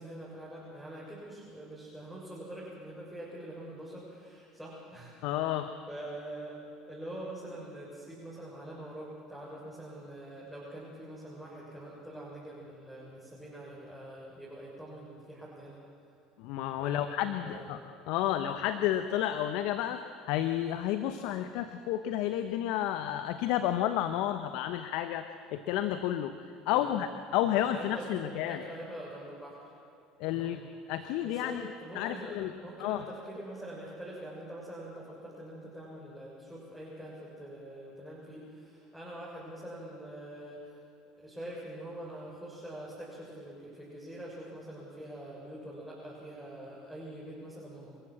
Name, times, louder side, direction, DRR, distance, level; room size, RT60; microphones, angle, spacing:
voice 1, 0.0-5.1 5.4-15.8 16.8-17.7 26.7-27.1 27.4-29.6 30.3-30.5 31.0-40.8 41.2-48.0, right 1 dB, ahead, -7 dB, 6.9 m, -44 dB
voice 2, 5.2-5.7 16.4-17.8 18.1-26.3 26.7-27.1 27.3-28.6 30.2-30.6 30.9-31.6 31.9-32.5 32.8-33.0, left 12 dB, 70° left, 9 dB, 1.0 m, -31 dB
28.0 x 15.0 x 7.8 m, 2.7 s
hypercardioid pair, 80°, 0 cm